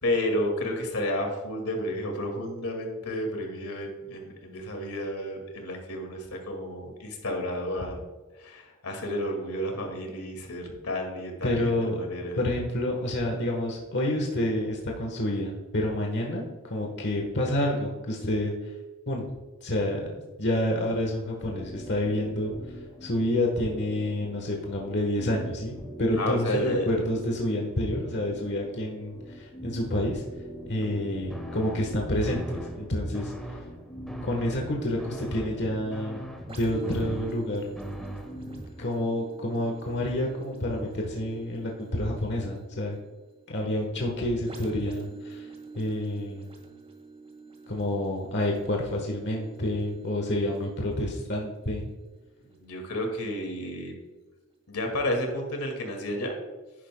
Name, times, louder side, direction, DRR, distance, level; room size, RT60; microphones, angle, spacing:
voice 1, 0.0-8.0 8.3-12.4 26.2-26.9 52.5-54.0 54.7-56.3, left 1 dB, 85° left, 3 dB, 2.1 m, -31 dB
voice 2, 11.4-18.7 19.1-19.3 19.6-22.5 23.0-30.2 30.6-33.3 34.2-37.7 38.8-43.0 43.5-45.5 45.8-46.5 47.7-51.9, left 1 dB, 55° left, 0 dB, 1.3 m, -29 dB
sound 1, 21.4-38.9, equal, 20° left, 2.1 m, -44 dB
sound 2, 31.3-38.7, equal, ahead, 1.1 m, -42 dB
sound 3, 36.5-54.0 54.6-54.7, right 3 dB, 25° right, 1.8 m, -47 dB
11.0 x 10.0 x 2.3 m, 1.3 s
head